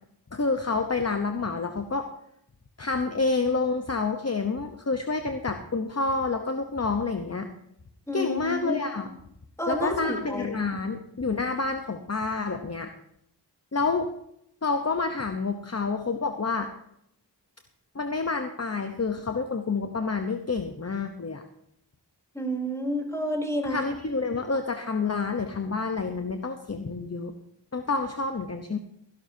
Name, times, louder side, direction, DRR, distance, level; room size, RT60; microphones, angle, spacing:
voice 1, 0.3-2.1 2.8-7.5 8.1-9.1 9.7-12.9 13.7-14.1 14.6-16.7 17.9-21.4 23.6-27.3 27.7-28.8, left 4 dB, 35° left, 6 dB, 1.0 m, -28 dB
voice 2, 8.1-8.9 9.6-10.6 22.3-23.8, equal, 5° left, 0 dB, 4.0 m, -30 dB
20.0 x 11.5 x 2.8 m, 0.75 s
wide cardioid pair, 40°, 43 cm